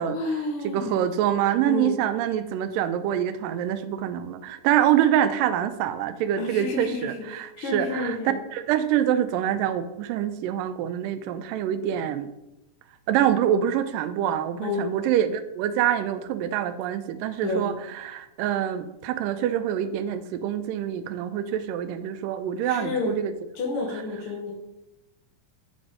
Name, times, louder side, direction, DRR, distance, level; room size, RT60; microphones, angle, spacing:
voice 1, 0.1-1.0 1.6-2.0 6.4-7.3 7.6-8.4 14.6-14.9 17.4-17.8 22.6-23.2 23.5-24.5, left 3 dB, 70° left, -1 dB, 1.3 m, -30 dB
voice 2, 0.6-8.2 8.5-12.3 13.1-23.3, right 10 dB, 85° right, 11 dB, 2.2 m, -25 dB
7.7 x 4.1 x 4.9 m, 0.91 s
omnidirectional pair, 3.8 m